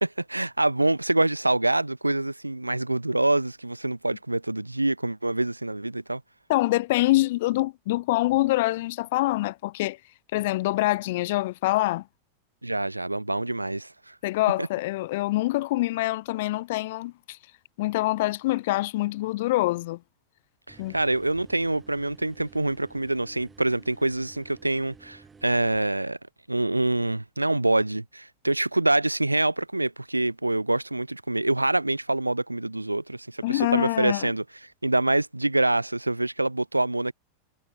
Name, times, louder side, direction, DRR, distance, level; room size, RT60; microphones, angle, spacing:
voice 1, 0.0-6.2 12.6-14.1 14.6-14.7 20.7-26.2 26.5-34.4 34.8-37.1, right 2 dB, 85° right, 0.5 m, -26 dB
voice 2, 6.5-10.0 10.3-12.0 14.2-17.4 17.8-20.0 20.8-21.0 33.4-34.3, left 18 dB, 50° left, 0.4 m, -25 dB
sound 1, 20.7-25.8, right 5 dB, 15° right, 1.8 m, -52 dB
figure-of-eight pair, 90°, 0 cm